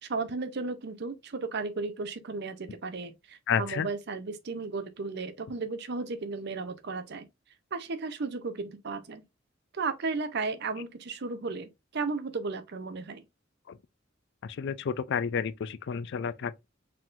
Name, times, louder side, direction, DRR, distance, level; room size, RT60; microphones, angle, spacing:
voice 1, 0.0-7.3 7.7-9.2 9.7-13.2, right 4 dB, 55° right, 0.7 m, -34 dB
voice 2, 3.5-3.9 13.7-13.8 14.4-16.6, left 6 dB, 60° left, 0.4 m, -31 dB
4.5 x 3.8 x 2.5 m
head